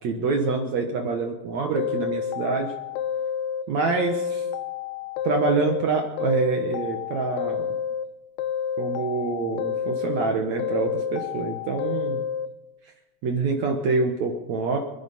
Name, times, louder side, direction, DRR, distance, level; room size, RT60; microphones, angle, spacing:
voice 1, 0.0-2.7 3.7-4.5 5.2-7.7 8.8-12.2 13.2-14.8, right 4 dB, 75° right, 3 dB, 1.6 m, -26 dB
sound 1, 1.8-3.6 4.0-5.9 6.2-8.1 8.4-10.3 10.6-12.5, left 8 dB, 80° left, 2.4 m, -29 dB
28.0 x 10.5 x 4.2 m, 1.0 s
omnidirectional pair, 5.0 m